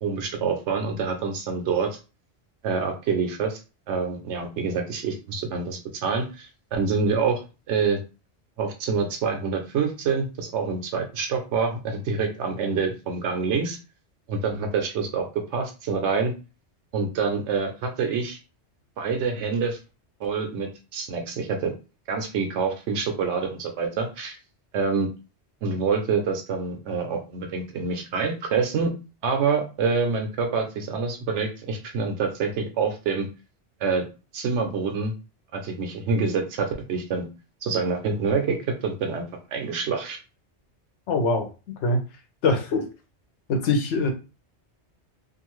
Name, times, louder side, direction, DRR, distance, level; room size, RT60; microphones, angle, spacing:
voice 1, 0.0-2.0 2.6-3.6 3.9-7.4 7.7-8.0 8.6-13.8 14.3-15.2 15.5-16.3 16.9-18.4 19.0-19.8 20.2-21.7 22.1-24.4 24.7-25.1 25.6-28.9 29.2-33.3 33.8-34.0 34.3-35.1 35.5-37.3 37.6-39.2 39.5-40.2, right 5 dB, 85° right, 3 dB, 0.9 m, -26 dB
voice 2, 41.1-41.5 41.8-42.0 42.4-42.9 43.5-44.1, left 3 dB, 80° left, 5 dB, 1.0 m, -22 dB
2.6 x 2.4 x 3.0 m, 0.31 s
omnidirectional pair, 1.2 m